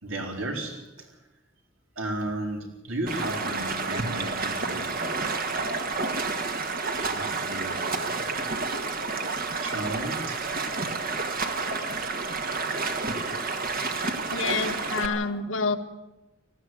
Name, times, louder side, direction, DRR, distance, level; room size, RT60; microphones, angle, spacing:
voice 1, 0.0-1.2 2.0-5.9 6.9-8.5 9.6-10.6 11.2-12.4 14.8-15.2, right 1 dB, 80° right, 2 dB, 4.4 m, -36 dB
Stream, 3.1-15.1, right 3 dB, 45° right, 1.7 m, -30 dB
voice 2, 14.3-15.8, left 4 dB, 80° left, 6 dB, 1.7 m, -27 dB
18.5 x 15.0 x 9.4 m, 1.0 s
head